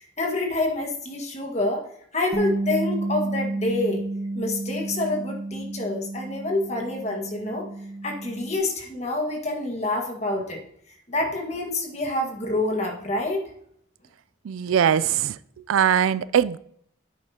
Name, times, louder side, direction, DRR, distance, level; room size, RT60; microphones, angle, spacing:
voice 1, 0.0-1.9 2.1-4.0 4.3-7.7 8.0-10.6 11.1-13.4, left 2 dB, 35° left, 1 dB, 1.7 m, -27 dB
Bass guitar, 2.3-8.6, right 2 dB, 20° right, 0.8 m, -31 dB
voice 2, 14.5-15.4 15.7-16.6, right 8 dB, 85° right, 17 dB, 0.4 m, -21 dB
9.9 x 7.9 x 2.8 m, 0.68 s
head